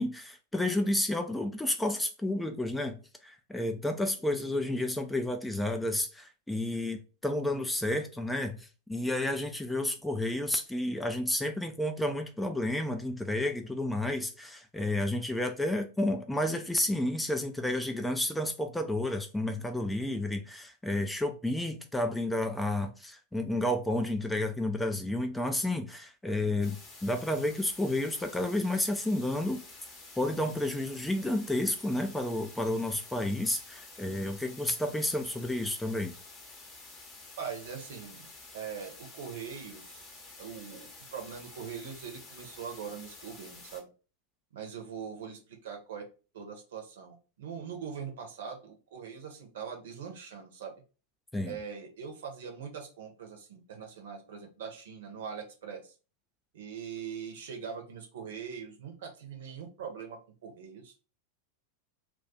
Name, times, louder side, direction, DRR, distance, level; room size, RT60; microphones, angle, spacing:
voice 1, 0.0-29.6 30.2-36.1 51.3-51.6, left 1 dB, 5° left, 0.3 m, -31 dB
sound 1, 26.6-43.8, left 3 dB, 25° left, 0.8 m, -50 dB
voice 2, 37.4-38.3 38.5-40.1 40.4-43.9 44.5-46.0 46.3-50.7 51.4-55.9 56.5-60.9, right 7 dB, 60° right, 0.7 m, -42 dB
2.4 x 2.3 x 3.8 m
figure-of-eight pair, 90°, 0 cm